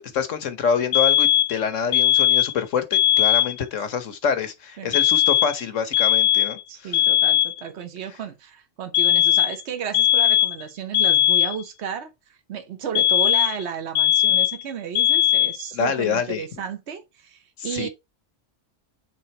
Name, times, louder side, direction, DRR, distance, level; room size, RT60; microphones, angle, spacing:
voice 1, 0.0-7.0 15.7-16.5 17.6-17.9, left 6 dB, 85° left, 1.4 m, -26 dB
sound 1, 0.9-1.6 1.9-2.6 2.9-3.6 4.9-5.6 5.9-6.6 6.9-7.6 8.9-9.6 9.9-10.6 10.9-11.6 13.0-13.6 14.0-14.6 15.0-15.6, left 11 dB, 60° left, 0.6 m, -19 dB
voice 2, 6.7-17.9, right 8 dB, 65° right, 1.3 m, -33 dB
6.1 x 3.8 x 4.4 m
omnidirectional pair, 1.3 m